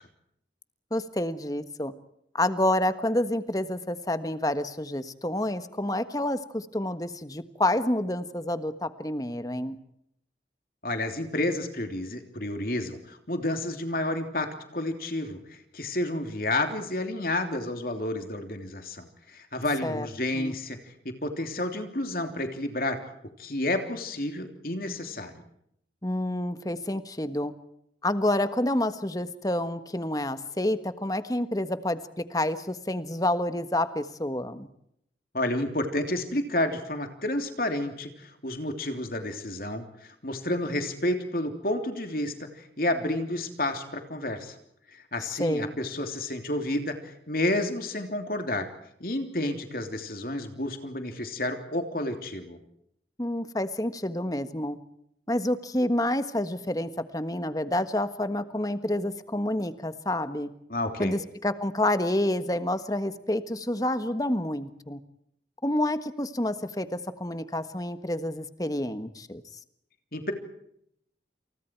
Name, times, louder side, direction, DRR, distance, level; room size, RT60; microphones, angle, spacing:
voice 1, 0.9-1.9 2.3-9.8 19.8-20.1 20.3-20.6 26.0-27.5 28.0-34.7 45.2-45.7 53.2-54.8 55.3-60.5 61.0-65.0 65.6-69.4, left 1 dB, 20° left, 10 dB, 1.4 m, -28 dB
voice 2, 10.8-14.5 14.7-20.9 21.2-23.0 23.4-25.4 35.3-44.5 44.9-48.7 49.0-52.6 60.7-61.1 70.1-70.3, left 1 dB, 55° left, 5 dB, 3.2 m, -30 dB
29.0 x 28.5 x 4.7 m, 0.73 s
head